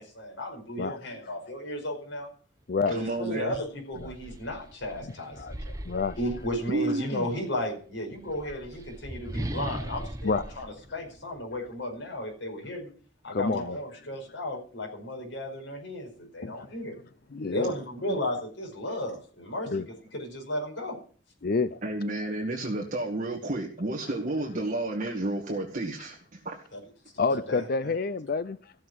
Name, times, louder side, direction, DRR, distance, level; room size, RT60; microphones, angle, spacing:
voice 1, 0.0-2.3 2.9-5.6 6.2-12.9 13.2-16.9 17.5-19.7 20.1-21.0 26.7-26.8 27.3-27.9, left 1 dB, 80° left, 5.3 m, -34 dB
voice 2, 2.9-3.5 6.7-7.3 21.8-26.6, right 2 dB, 45° right, 2.2 m, -31 dB
sound 1, 3.8-7.2 8.1-11.7, right 1 dB, 20° right, 1.0 m, -39 dB
voice 3, 5.9-6.2 8.5-8.6 10.2-10.4 13.3-13.8 16.4-16.7 17.3-17.7 19.7-19.9 21.4-21.8 27.2-28.6, left 4 dB, 50° left, 0.5 m, -28 dB
15.0 x 6.7 x 7.9 m
head